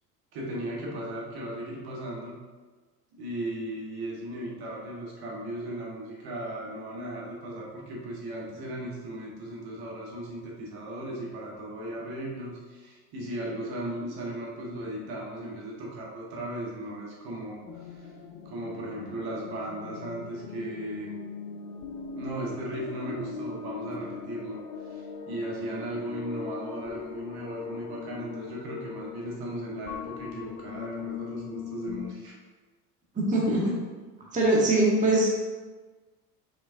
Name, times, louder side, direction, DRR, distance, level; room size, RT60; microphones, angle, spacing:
voice 1, 0.3-2.4 3.1-18.1 18.4-21.2 22.1-32.4, right 1 dB, 50° right, -3 dB, 1.4 m, -36 dB
sound 1, 17.7-32.1, left 6 dB, 45° left, 0.6 m, -40 dB
voice 2, 33.1-33.8 34.3-35.3, right 2 dB, 15° right, -4 dB, 1.1 m, -22 dB
5.0 x 3.9 x 2.6 m, 1.3 s
hypercardioid pair, 80°, 47 cm